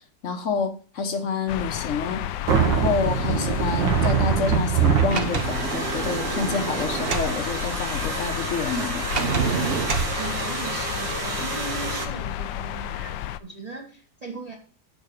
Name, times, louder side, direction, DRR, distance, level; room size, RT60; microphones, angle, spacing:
voice 1, 0.2-2.3 2.6-9.1, left 5 dB, 50° left, 1.2 m, -28 dB
sound 1, 1.5-13.4, left 12 dB, 75° left, 1.1 m, -32 dB
sound 2, 2.5-12.0, right 6 dB, 75° right, 2.0 m, -26 dB
Sliding door, 5.1-7.4 9.1-10.1, right 5 dB, 45° right, 0.8 m, -27 dB
voice 2, 10.1-14.6, right 4 dB, 20° right, 1.3 m, -38 dB
8.7 x 4.6 x 6.7 m
omnidirectional pair, 2.1 m